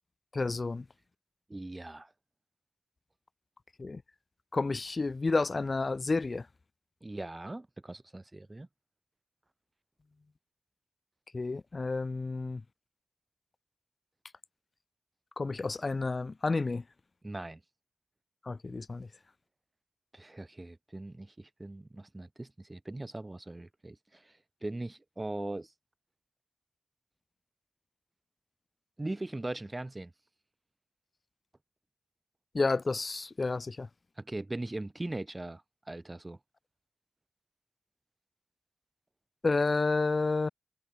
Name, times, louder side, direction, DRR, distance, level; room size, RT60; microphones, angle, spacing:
voice 1, 0.3-0.8 3.8-4.0 4.5-6.5 11.3-12.6 15.4-16.8 18.5-19.1 32.5-33.9 39.4-40.5, left 3 dB, 40° left, 2.7 m, -30 dB
voice 2, 1.5-2.1 7.0-8.7 17.2-17.6 20.1-24.3 24.6-25.7 29.0-30.1 34.2-35.6 35.9-36.4, right 2 dB, 20° right, 4.6 m, -40 dB
cardioid pair, 70°, 0 cm